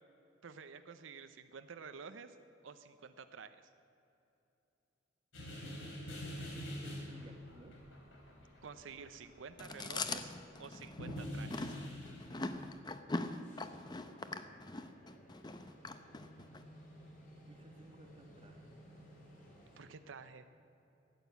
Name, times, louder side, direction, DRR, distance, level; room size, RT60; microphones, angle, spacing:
voice 1, 0.4-2.4 2.6-3.6 8.6-11.8 19.8-20.4, right 5 dB, 90° right, 9 dB, 0.6 m, -50 dB
sound 1, 5.3-10.7 11.0-12.6, equal, 90° left, 3.2 m, -45 dB
voice 2, 6.8-7.7 15.5-15.9 17.5-18.7, right 1 dB, 30° right, 3 dB, 1.4 m, -58 dB
Chewing mastication, 9.6-16.6, left 3 dB, 20° left, 0.6 m, -42 dB
sound 2, 13.1-19.8, equal, 40° left, 4.0 m, -58 dB
14.5 x 9.1 x 8.1 m, 2.9 s
head